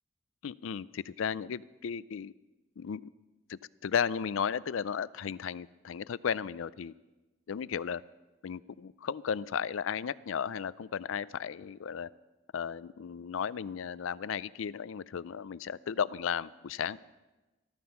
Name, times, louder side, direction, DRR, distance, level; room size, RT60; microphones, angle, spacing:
voice 1, 0.4-2.3 2.8-3.1 3.5-6.9 7.5-8.0 8.4-12.1 12.5-17.0, left 7 dB, 70° left, 19 dB, 0.4 m, -34 dB
14.5 x 13.5 x 5.7 m, 1.1 s
head